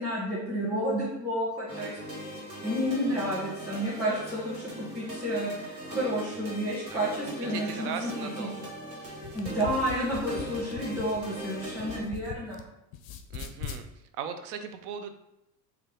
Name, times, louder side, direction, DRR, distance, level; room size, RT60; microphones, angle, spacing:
voice 1, 0.0-2.3 2.6-8.1 8.4-8.5 9.3-12.6, equal, ahead, -8 dB, 1.2 m, -31 dB
sound 1, 1.7-12.0, equal, 85° right, 1.4 m, -40 dB
voice 2, 6.9-8.7 9.0-9.2 13.3-13.8 14.2-15.1, right 7 dB, 65° right, 8 dB, 0.6 m, -39 dB
sound 2, 7.6-9.2, right 3 dB, 25° right, 1.0 m, -48 dB
sound 3, 9.1-12.6 12.9-13.8, left 7 dB, 45° left, 0.4 m, -41 dB
3.3 x 2.3 x 3.5 m, 0.87 s
hypercardioid pair, 80°, 49 cm